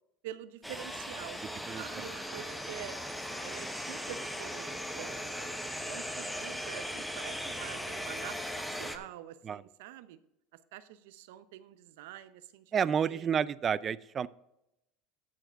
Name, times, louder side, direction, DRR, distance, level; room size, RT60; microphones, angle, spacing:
voice 1, 0.2-1.4 1.8-3.0 3.4-5.5 5.9-10.2 10.5-13.3, right 12 dB, 80° right, 14 dB, 0.7 m, -47 dB
sound 1, 0.6-9.0, equal, ahead, 0.9 m, -38 dB
voice 2, 12.7-14.3, right 7 dB, 30° right, 18 dB, 0.4 m, -30 dB
13.5 x 4.8 x 4.6 m, 0.84 s
supercardioid pair, 125°, 0 cm